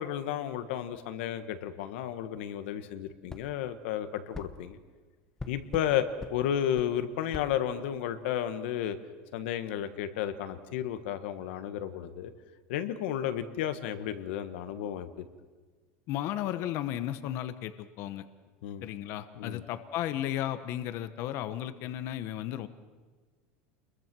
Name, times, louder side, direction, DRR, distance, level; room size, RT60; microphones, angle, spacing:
voice 1, 0.0-4.8 5.5-6.0 6.3-9.0 9.3-12.3 12.7-15.2 18.6-18.9 19.4-19.6, left 10 dB, 65° left, 10 dB, 1.4 m, -32 dB
sound 1, 3.3-3.5 4.3-4.5 5.4-5.9 6.2-6.4 6.8-6.9 7.3-7.5, left 3 dB, 10° left, 0.8 m, -41 dB
voice 2, 16.1-18.3 18.8-22.7, left 12 dB, 40° left, 12 dB, 1.0 m, -34 dB
29.0 x 22.0 x 6.2 m, 1.4 s
supercardioid pair, 175°, 7 cm